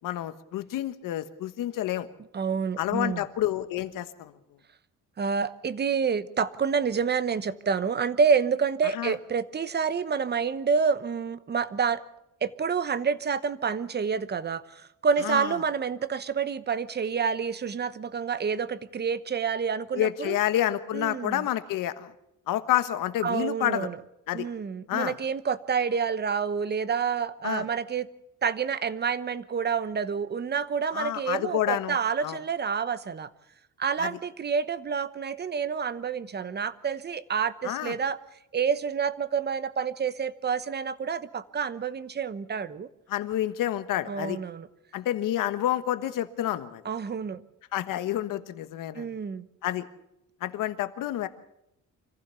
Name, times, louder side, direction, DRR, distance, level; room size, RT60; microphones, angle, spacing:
voice 1, 0.0-2.1 2.8-4.3 8.9-9.1 15.2-15.5 19.9-22.1 22.5-23.9 24.3-24.5 24.9-25.1 27.4-27.6 30.9-32.0 32.2-32.4 34.0-34.1 37.6-37.9 43.1-44.4 44.9-46.8 47.7-49.1 49.6-49.9 50.4-51.3, left 13 dB, 90° left, 11 dB, 1.3 m, -29 dB
voice 2, 2.3-3.2 5.2-12.0 12.4-20.4 20.9-21.5 23.2-24.0 24.3-28.1 28.4-33.3 33.8-38.2 38.5-42.9 44.1-44.7 46.8-47.4 48.9-49.5, right 6 dB, 30° right, 15 dB, 1.0 m, -28 dB
25.5 x 15.0 x 6.9 m, 0.81 s
cardioid pair, 130°, 31 cm